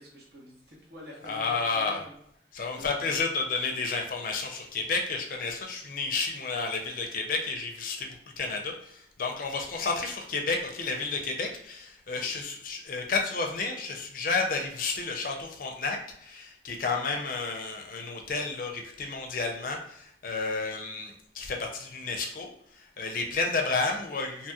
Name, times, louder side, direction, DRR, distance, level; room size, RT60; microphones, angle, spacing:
voice 1, 0.0-2.1 2.7-3.2 12.2-12.4, equal, 60° right, -3 dB, 1.0 m, -47 dB
voice 2, 1.3-2.0 2.5-22.5 22.8-24.5, left 4 dB, 50° left, 2 dB, 0.4 m, -31 dB
2.8 x 2.8 x 2.3 m, 0.71 s
head